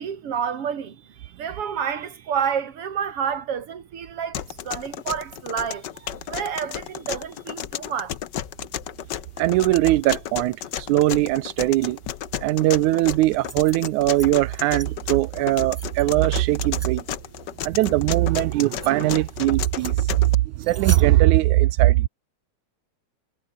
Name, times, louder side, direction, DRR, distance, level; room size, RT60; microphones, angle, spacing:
voice 1, 0.0-8.2, right 7 dB, 50° right, 3.3 m, -29 dB
sound 1, 4.3-20.4, left 10 dB, 75° left, 1.0 m, -33 dB
voice 2, 9.4-12.0 12.4-17.0 17.6-20.1 20.6-22.1, right 17 dB, 85° right, 2.2 m, -20 dB
sound 2, 13.3-14.3 14.6-14.9 15.4-16.1 16.7-16.9 17.7-17.9 18.3-18.4 18.8-18.9 19.6-20.0 20.6-21.0, right 1 dB, 10° right, 0.6 m, -39 dB
omnidirectional pair, 3.3 m